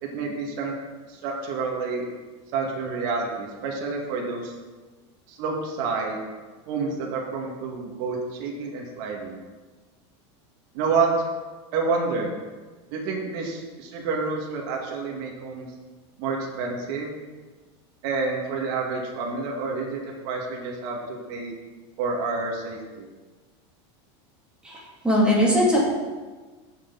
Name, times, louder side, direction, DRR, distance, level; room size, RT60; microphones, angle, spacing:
voice 1, 0.0-0.7 1.1-2.1 2.5-4.5 5.3-6.2 6.7-9.4 10.7-11.1 11.7-12.3 12.9-15.7 16.2-17.1 18.0-21.5 22.0-23.1, right 4 dB, 50° right, -1 dB, 2.1 m, -29 dB
voice 2, 24.6-25.8, equal, 5° right, -5 dB, 2.7 m, -20 dB
15.0 x 6.5 x 4.1 m, 1.3 s
supercardioid pair, 170°, 15 cm